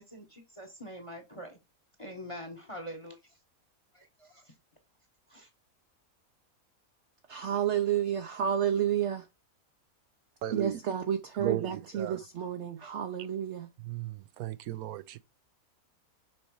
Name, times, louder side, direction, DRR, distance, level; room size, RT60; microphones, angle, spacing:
voice 1, 0.0-1.6 2.0-3.2 3.9-4.5 5.3-5.5 12.8-12.9, equal, 25° left, 1.1 m, -44 dB
voice 2, 7.3-9.3 10.5-13.7, right 9 dB, 60° right, 0.9 m, -30 dB
voice 3, 10.4-10.8 11.4-11.6 11.9-12.2 13.9-14.1 14.4-15.2, right 12 dB, 85° right, 1.1 m, -34 dB
6.2 x 4.2 x 4.7 m
omnidirectional pair, 1.5 m